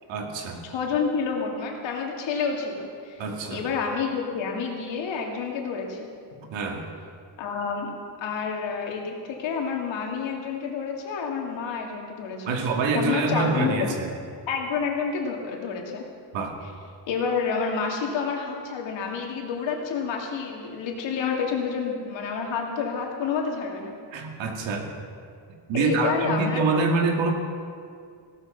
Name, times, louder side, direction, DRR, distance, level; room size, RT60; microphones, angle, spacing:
voice 1, 0.1-0.6 3.2-3.6 6.5-6.9 12.4-14.1 16.3-16.6 24.1-25.0 25.7-27.3, right 3 dB, 75° right, 3 dB, 2.3 m, -25 dB
voice 2, 0.6-3.2 3.5-6.1 7.4-12.6 12.9-13.7 14.5-16.0 17.1-24.0 25.8-26.7, left 5 dB, 75° left, 1 dB, 2.7 m, -29 dB
17.0 x 13.0 x 5.5 m, 2.3 s
cardioid pair, 180°, 46 cm